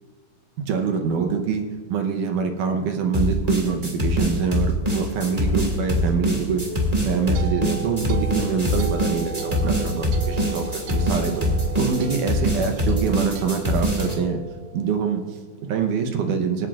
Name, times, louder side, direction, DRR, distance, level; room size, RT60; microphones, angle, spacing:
voice 1, 0.7-6.7 7.0-11.5 11.8-14.4 14.7-16.7, right 6 dB, 70° right, 4 dB, 2.1 m, -25 dB
sound 1, 3.1-14.2, equal, 25° right, 0.9 m, -23 dB
sound 2, 4.8-12.1, left 2 dB, 70° left, 5.6 m, -37 dB
sound 3, 6.8-15.2, right 5 dB, 85° right, 2.9 m, -37 dB
25.5 x 9.2 x 2.5 m, 1.4 s
omnidirectional pair, 4.3 m